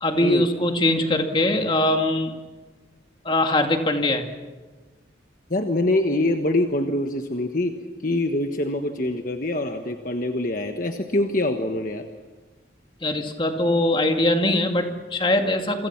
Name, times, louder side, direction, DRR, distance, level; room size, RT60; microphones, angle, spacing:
voice 1, 0.0-2.4 3.2-4.3 13.0-15.9, left 1 dB, 25° left, 4 dB, 2.2 m, -22 dB
voice 2, 5.5-7.7 8.0-12.1, left 1 dB, 45° left, 5 dB, 1.4 m, -24 dB
28.5 x 25.0 x 6.0 m, 1.3 s
head